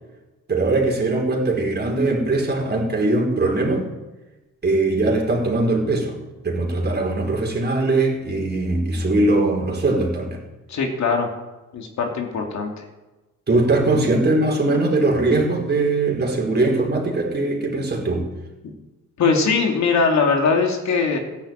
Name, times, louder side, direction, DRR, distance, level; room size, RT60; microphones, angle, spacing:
voice 1, 0.5-3.9 4.6-6.1 6.4-10.4 13.5-18.3, right 2 dB, 35° right, 1 dB, 4.4 m, -21 dB
voice 2, 10.7-11.3 11.7-12.8 18.6-18.7 19.2-21.2, left 4 dB, 65° left, 2 dB, 3.0 m, -21 dB
14.0 x 10.5 x 9.1 m, 1.1 s
cardioid pair, 90°, 30 cm